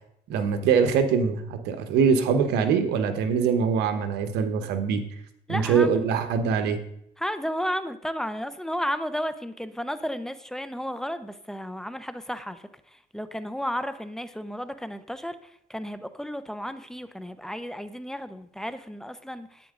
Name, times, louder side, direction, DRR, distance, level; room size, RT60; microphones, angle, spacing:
voice 1, 0.3-5.0 5.5-6.8, right 6 dB, 85° right, 8 dB, 1.2 m, -23 dB
voice 2, 5.5-6.0 7.2-12.6 12.9-19.7, equal, 5° left, 12 dB, 0.7 m, -33 dB
10.5 x 9.1 x 3.8 m, 0.74 s
cardioid pair, 110°, 17 cm